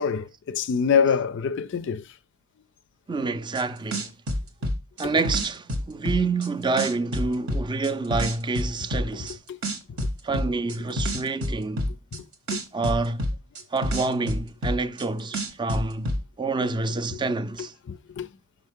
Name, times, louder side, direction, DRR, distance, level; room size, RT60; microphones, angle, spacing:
voice 1, 0.0-2.1 5.0-5.1 9.1-9.6 9.9-10.0 11.0-11.1 11.8-12.3 12.5-12.6 17.1-17.2 17.6-18.3, left 6 dB, 55° left, 0.4 m, -27 dB
voice 2, 3.1-4.1 5.0-9.4 10.2-11.9 12.7-13.2 13.7-17.7, right 3 dB, 20° right, 0.4 m, -27 dB
sound 1, 3.6-3.7 3.9-6.5 6.8-9.3 9.6-12.2 12.5-15.0 15.3-16.2, equal, 65° right, 1.1 m, -27 dB
5.9 x 5.3 x 3.6 m
head